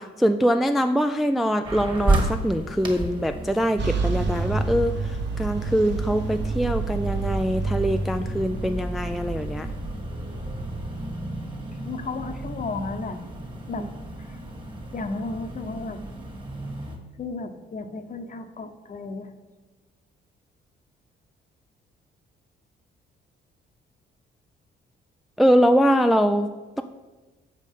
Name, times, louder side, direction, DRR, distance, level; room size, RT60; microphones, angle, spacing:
voice 1, 0.0-9.7 13.8-13.9 25.4-26.5, equal, ahead, 7 dB, 0.3 m, -23 dB
sound 1, 1.6-17.0, right 2 dB, 25° right, 1.7 m, -33 dB
sound 2, 3.8-11.2, right 3 dB, 65° right, 1.4 m, -29 dB
voice 2, 11.8-13.2 13.7-13.9 14.9-16.0 17.2-19.3, left 3 dB, 40° left, 8 dB, 0.9 m, -33 dB
7.4 x 5.2 x 5.4 m, 1.2 s
cardioid pair, 90°, 20 cm